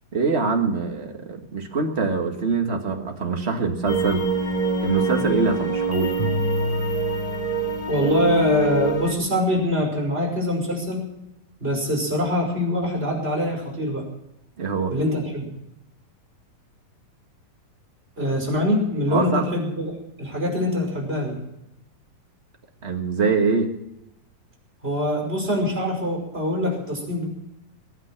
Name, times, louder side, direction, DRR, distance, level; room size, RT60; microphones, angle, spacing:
voice 1, 0.1-4.2 4.8-6.1 14.6-14.9 19.1-19.5 22.8-23.7, right 4 dB, 35° right, 3 dB, 1.1 m, -24 dB
sound 1, 3.9-9.1, right 2 dB, 15° left, 1.4 m, -24 dB
voice 2, 7.9-11.1 11.6-14.0 14.9-15.5 18.2-21.4 24.8-27.3, left 1 dB, 15° right, 0 dB, 5.5 m, -24 dB
22.5 x 9.3 x 5.9 m, 0.87 s
omnidirectional pair, 3.9 m